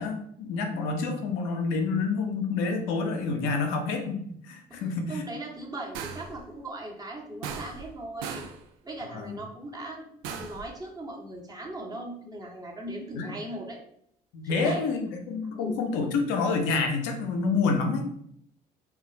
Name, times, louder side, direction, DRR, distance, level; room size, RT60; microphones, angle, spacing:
voice 1, 0.0-5.2 9.1-9.4 13.1-13.3 14.3-18.1, left 4 dB, 75° left, 5 dB, 0.6 m, -28 dB
voice 2, 5.1-8.4 8.8-13.8 14.4-14.8 15.5-15.8, right 1 dB, 20° right, -2 dB, 1.0 m, -39 dB
sound 1, 5.9-6.4 7.4-7.9 8.2-8.6 10.2-10.7, right 6 dB, 80° right, 0.4 m, -37 dB
2.3 x 2.2 x 3.9 m, 0.69 s
hypercardioid pair, 60°, 20 cm